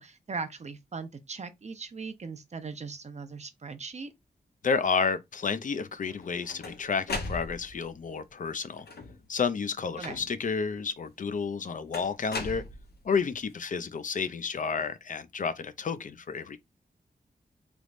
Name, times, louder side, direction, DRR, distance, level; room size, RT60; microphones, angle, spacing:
voice 1, 0.0-4.1 10.0-10.2, right 4 dB, 45° right, 0.6 m, -39 dB
voice 2, 4.6-8.9 9.3-12.6 13.0-16.6, left 5 dB, 55° left, 0.5 m, -31 dB
sound 1, 6.1-7.9 8.8-9.3 10.0-10.6 11.9-13.2, left 3 dB, 90° left, 0.8 m, -38 dB
3.3 x 3.0 x 2.5 m
cardioid pair, 70°, 16 cm